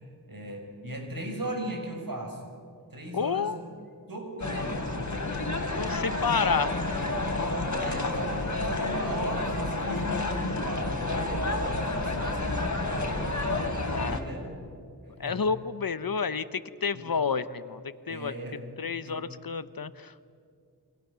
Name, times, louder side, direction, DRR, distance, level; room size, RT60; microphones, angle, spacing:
voice 1, 0.0-2.4 2.9-3.6 4.1-4.9 7.5-13.3 13.9-14.7 15.2-15.4 16.9-17.0 18.1-18.6 19.0-19.2, right 1 dB, 60° right, 2 dB, 6.1 m, -37 dB
voice 2, 3.1-3.6 5.3-6.8 13.9-14.2 15.2-18.3 18.8-20.2, left 5 dB, 65° left, 13 dB, 1.0 m, -30 dB
sound 1, 4.4-14.2, left 2 dB, 50° left, 3.2 m, -30 dB
29.0 x 24.5 x 7.0 m, 2.3 s
wide cardioid pair, 60°, 38 cm